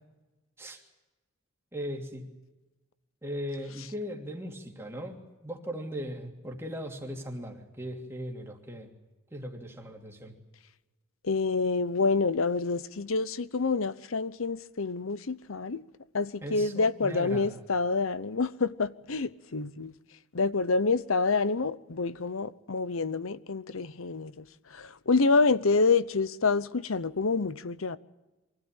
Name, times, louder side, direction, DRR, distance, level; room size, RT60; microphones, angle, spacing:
voice 1, 1.7-2.3 3.2-8.9 9.3-10.4 16.4-17.6, equal, 10° right, 2.8 m, -38 dB
voice 2, 11.2-15.8 16.1-19.9 20.3-24.3 24.7-28.0, left 4 dB, 80° left, 0.8 m, -27 dB
24.0 x 16.5 x 9.0 m
head